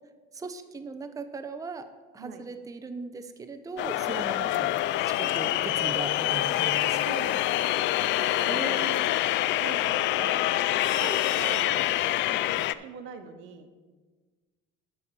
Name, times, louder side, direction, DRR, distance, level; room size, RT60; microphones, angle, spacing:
voice 1, 0.3-1.9 2.1-4.7 5.0-7.0 7.3-7.5 8.5-9.3 12.3-12.5, right 4 dB, 15° right, 9 dB, 0.6 m, -38 dB
sound 1, 3.8-12.7, left 14 dB, 65° left, 0.4 m, -26 dB
voice 2, 7.0-7.8 8.1-8.6 9.6-10.5 10.9-11.8 12.4-13.7, right 6 dB, 75° right, 8 dB, 1.1 m, -42 dB
12.0 x 4.4 x 6.7 m, 1.4 s
cardioid pair, 100°, 20 cm